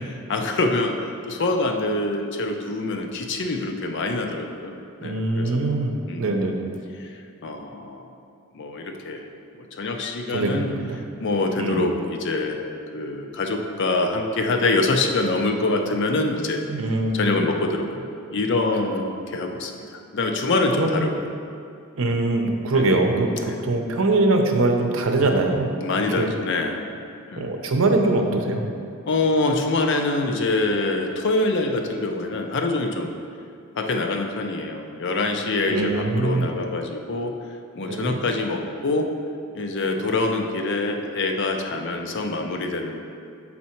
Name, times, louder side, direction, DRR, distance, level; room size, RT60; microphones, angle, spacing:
voice 1, 0.3-1.0 1.3-5.8 6.1-6.3 7.0-8.1 8.5-9.2 9.6-10.7 11.2-12.6 12.9-16.6 17.1-19.8 20.1-21.2 22.7-22.8 23.4-23.6 25.8-26.9 27.3-27.5 29.1-33.1 33.8-37.4 37.7-39.1 39.5-43.0, left 2 dB, 55° left, 4 dB, 0.6 m, -25 dB
voice 2, 5.0-6.6 10.3-11.0 11.6-11.8 16.7-17.5 20.7-21.1 22.0-25.7 26.2-26.3 27.4-28.7 35.7-36.5 37.9-38.2, right 2 dB, 65° right, 3 dB, 0.7 m, -22 dB
7.3 x 4.2 x 4.4 m, 2.4 s
head